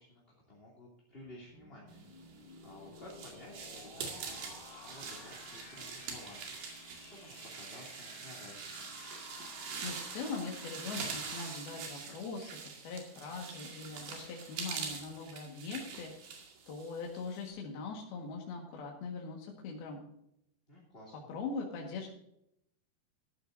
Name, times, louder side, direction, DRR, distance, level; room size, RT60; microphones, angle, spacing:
voice 1, 0.0-2.0 2.3-8.9 20.7-21.3, left 1 dB, 15° left, -5 dB, 2.3 m, -54 dB
sound 1, 1.4-12.9, left 3 dB, 50° left, 3.3 m, -55 dB
sound 2, 2.3-17.5, right 5 dB, 80° right, 4.2 m, -44 dB
voice 2, 9.8-20.1 21.3-22.1, left 4 dB, 70° left, -1 dB, 3.5 m, -41 dB
13.5 x 13.0 x 2.7 m, 0.75 s
omnidirectional pair, 4.6 m